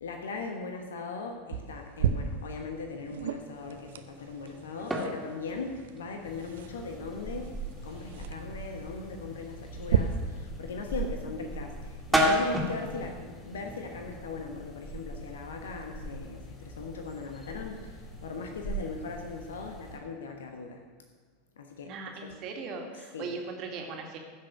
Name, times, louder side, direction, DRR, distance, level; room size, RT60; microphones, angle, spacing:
voice 1, 0.0-17.9 18.2-20.8 21.6-21.9 23.1-23.3, left 4 dB, 70° left, 4 dB, 1.2 m, -39 dB
sound 1, 1.5-10.0, right 9 dB, 65° right, 0.7 m, -35 dB
sound 2, 3.5-14.2, equal, 5° right, 2.5 m, -35 dB
sound 3, 6.2-20.0, right 2 dB, 25° left, 4.3 m, -42 dB
voice 2, 21.8-24.2, right 4 dB, 45° right, 2 dB, 2.1 m, -39 dB
15.0 x 6.6 x 6.3 m, 1.5 s
figure-of-eight pair, 85°, 0 cm